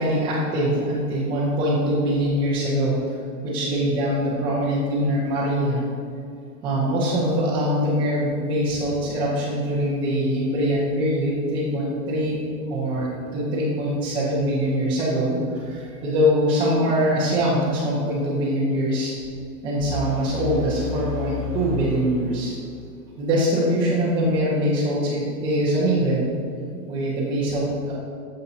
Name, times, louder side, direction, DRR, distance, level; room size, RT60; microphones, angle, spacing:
voice 1, 0.0-3.2 3.4-5.8 6.6-12.4 12.7-19.1 19.6-22.5 23.2-26.3 26.9-27.9, equal, 10° right, -9 dB, 0.7 m, -23 dB
sound 1, 19.8-22.8, left 5 dB, 10° left, 1.5 m, -32 dB
11.0 x 6.6 x 2.8 m, 2.4 s
hypercardioid pair, 160°, 47 cm